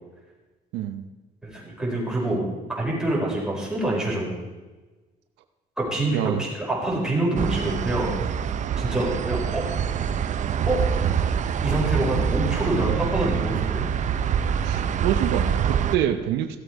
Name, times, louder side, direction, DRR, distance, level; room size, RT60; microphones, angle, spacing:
voice 1, 0.7-1.0 6.1-6.4 14.6-16.6, right 11 dB, 90° right, 8 dB, 0.8 m, -26 dB
voice 2, 1.4-2.5 2.8-4.3 5.8-8.1 8.8-9.6 10.7-10.8 11.6-13.8, right 1 dB, 5° right, -5 dB, 4.8 m, -26 dB
sound 1, 7.4-16.0, right 8 dB, 45° right, 0.7 m, -25 dB
16.0 x 8.0 x 4.7 m, 1.2 s
cardioid pair, 110°, 17 cm